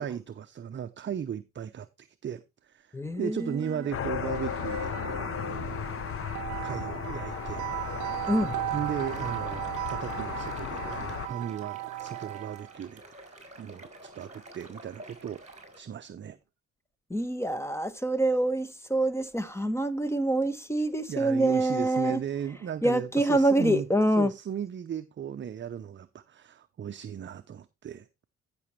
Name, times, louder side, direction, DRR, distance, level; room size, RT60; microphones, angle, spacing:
voice 1, 0.0-5.8 6.1-6.2 6.6-7.7 8.3-8.4 8.7-15.4 15.7-16.4 21.1-23.9 24.2-28.1, right 8 dB, 40° right, 0.6 m, -36 dB
voice 2, 2.9-3.9 8.3-8.6 17.1-22.2 22.8-24.3, right 1 dB, 10° left, 1.2 m, -26 dB
sound 1, 3.3-12.8, right 20 dB, 80° right, 0.5 m, -37 dB
sound 2, 3.9-11.3, left 9 dB, 45° left, 0.7 m, -35 dB
sound 3, 8.2-15.8, right 2 dB, 25° right, 3.8 m, -49 dB
14.5 x 6.1 x 3.2 m
cardioid pair, 90°, 30 cm